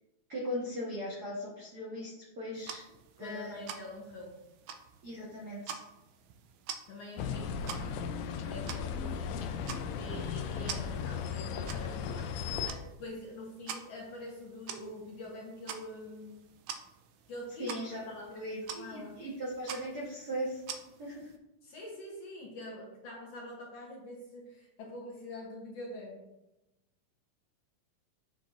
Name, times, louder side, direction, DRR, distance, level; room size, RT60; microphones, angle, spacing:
voice 1, 0.3-2.8 3.2-3.7 5.0-5.8 17.6-18.0 18.4-20.6 21.0-21.3, equal, 60° right, -5 dB, 1.0 m, -38 dB
sound 1, 2.6-21.4, right 7 dB, 80° right, 1.8 m, -47 dB
voice 2, 3.2-4.4 6.9-7.8 8.4-9.4 10.0-16.4 17.3-17.7 18.0-19.2 21.6-26.3, left 1 dB, 60° left, -2 dB, 1.8 m, -45 dB
sound 2, 7.2-12.7, left 7 dB, 80° left, 1.7 m, -36 dB
7.3 x 6.9 x 2.5 m, 0.96 s
omnidirectional pair, 3.8 m